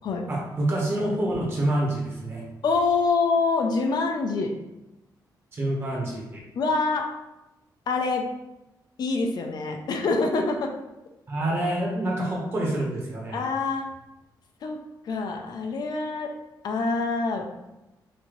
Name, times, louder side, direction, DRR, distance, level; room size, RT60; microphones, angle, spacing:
voice 1, 0.3-2.4 5.5-6.4 11.3-13.4, right 1 dB, 30° right, -3 dB, 1.3 m, -27 dB
voice 2, 2.6-4.5 6.5-7.1 7.9-8.3 9.0-10.7 13.3-13.9 14.6-14.8 15.0-16.3 16.6-17.5, left 3 dB, 60° left, 3 dB, 0.5 m, -25 dB
5.9 x 2.8 x 3.2 m, 0.96 s
wide cardioid pair, 165°, 8 cm